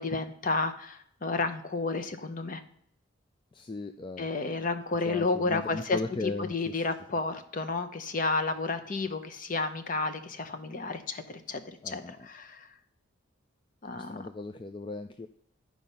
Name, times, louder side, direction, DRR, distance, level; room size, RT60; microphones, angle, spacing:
voice 1, 0.0-2.6 4.2-11.2 11.5-12.7 13.8-14.2, left 3 dB, 45° left, 9 dB, 0.7 m, -31 dB
voice 2, 3.5-4.3 5.0-6.8 11.8-12.3 13.9-15.3, left 3 dB, 25° left, 8 dB, 0.3 m, -37 dB
11.0 x 4.8 x 5.4 m, 0.69 s
head